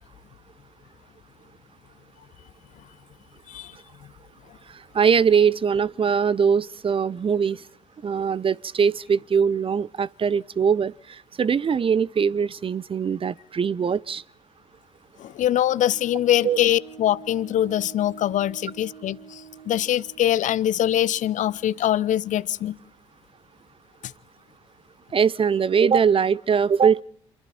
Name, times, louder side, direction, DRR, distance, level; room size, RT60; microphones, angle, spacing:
voice 1, 4.9-7.6 8.0-14.2 16.4-16.6 25.1-27.0, right 6 dB, 40° right, 0.7 m, -21 dB
voice 2, 15.2-22.8, left 12 dB, 60° left, 0.8 m, -23 dB
sound 1, 15.4-22.8, right 7 dB, 85° right, 3.4 m, -47 dB
27.0 x 22.0 x 4.3 m
hypercardioid pair, 45°, 15 cm